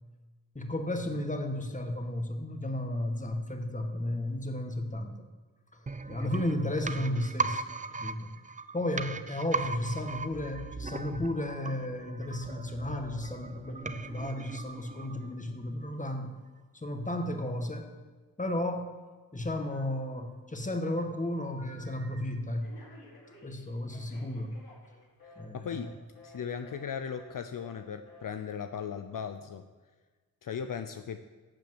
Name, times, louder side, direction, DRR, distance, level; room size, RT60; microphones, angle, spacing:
voice 1, 0.5-5.1 5.7-7.7 8.0-8.4 8.7-16.3 16.7-17.9 18.4-18.9 19.3-22.8 23.4-24.6 25.3-25.8, left 1 dB, 20° left, 5 dB, 1.8 m, -33 dB
sound 1, 5.9-15.6 15.9-16.0, right 4 dB, 20° right, 0.6 m, -38 dB
Telephone, 19.7-20.3 20.6-22.2 22.6-25.4 25.7-25.9 26.1-26.4 26.6-26.8 27.1-27.3 27.6-27.8 28.1-28.3, left 2 dB, 85° left, 4.9 m, -52 dB
voice 2, 25.5-25.9 26.2-29.6 30.4-31.2, left 7 dB, 60° left, 8 dB, 0.7 m, -37 dB
12.0 x 7.3 x 8.0 m, 1.4 s
cardioid pair, 60°, 36 cm